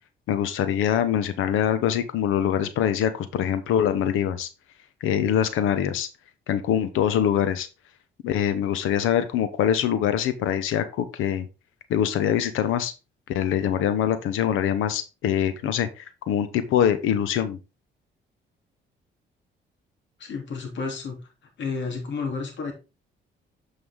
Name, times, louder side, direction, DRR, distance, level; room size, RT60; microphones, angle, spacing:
voice 1, 0.3-4.5 5.0-6.1 6.5-7.7 8.2-11.5 11.9-12.9 13.3-17.6, left 9 dB, 90° left, 12 dB, 1.0 m, -24 dB
voice 2, 20.2-21.2 21.6-22.7, left 4 dB, 65° left, 3 dB, 3.1 m, -31 dB
8.2 x 5.4 x 3.7 m, 0.29 s
cardioid pair, 90°, 20 cm